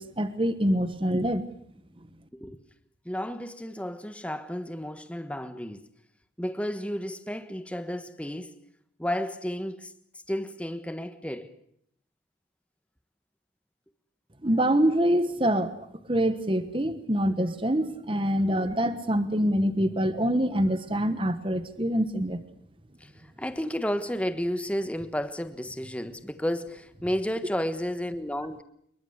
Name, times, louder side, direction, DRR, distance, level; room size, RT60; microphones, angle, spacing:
voice 1, 0.0-1.4 14.4-15.7 16.1-22.4, equal, 25° right, 1.3 m, -25 dB
voice 2, 3.0-5.8 6.4-8.5 9.0-9.9 10.3-11.5 18.2-18.3 23.0-23.1 23.4-28.6, equal, 5° left, 1.3 m, -32 dB
26.5 x 22.5 x 8.1 m
head